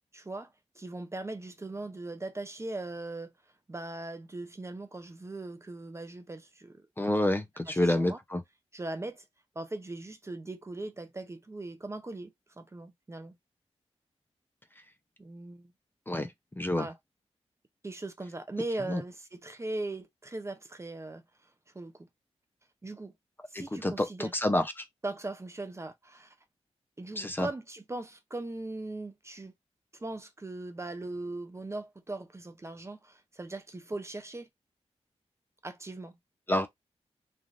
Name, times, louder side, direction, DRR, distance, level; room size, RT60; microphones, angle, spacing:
voice 1, 0.1-3.3 3.7-6.9 7.7-8.2 8.7-9.2 9.6-12.3 12.6-13.3 15.2-15.7 16.7-17.0 17.8-22.1 22.8-23.1 23.5-24.3 25.0-26.4 27.0-29.5 30.0-34.5 35.6-36.2, right 2 dB, 25° right, 0.5 m, -39 dB
voice 2, 7.0-8.4 16.1-16.3 16.6-16.9 18.9-19.0 23.5-24.8 27.2-27.5 36.5-36.7, left 1 dB, 20° left, 0.6 m, -28 dB
3.1 x 2.5 x 2.5 m
cardioid pair, 65°, 11 cm